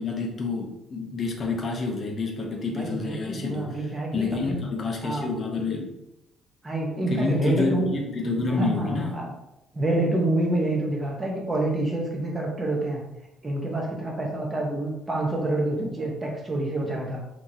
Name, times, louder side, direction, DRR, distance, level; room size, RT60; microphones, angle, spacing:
voice 1, 0.0-3.7 4.1-5.9 7.1-9.2, left 3 dB, 35° left, 1 dB, 0.9 m, -28 dB
voice 2, 2.7-4.6 5.0-5.3 6.6-7.9 8.6-9.3 9.7-13.1 13.4-17.2, right 2 dB, 15° right, -1 dB, 1.1 m, -27 dB
5.6 x 3.0 x 2.9 m, 0.89 s
cardioid pair, 145°, 0 cm